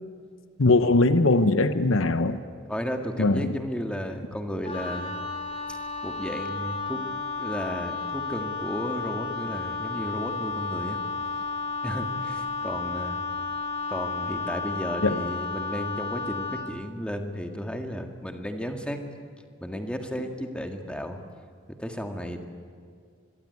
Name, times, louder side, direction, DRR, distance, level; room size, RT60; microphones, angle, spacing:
voice 1, 0.6-2.4 3.2-3.5 15.0-15.3, left 2 dB, 75° left, 10 dB, 1.0 m, -21 dB
voice 2, 2.7-5.1 5.7-5.8 6.0-7.1 7.4-11.0 11.8-13.2 13.9-19.0 19.6-21.2 21.8-22.4, equal, 5° left, 4 dB, 1.9 m, -33 dB
Wind instrument woodwind instrument, 4.6-16.7, left 4 dB, 30° left, 3.4 m, -32 dB
26.0 x 22.5 x 9.6 m, 2.1 s
head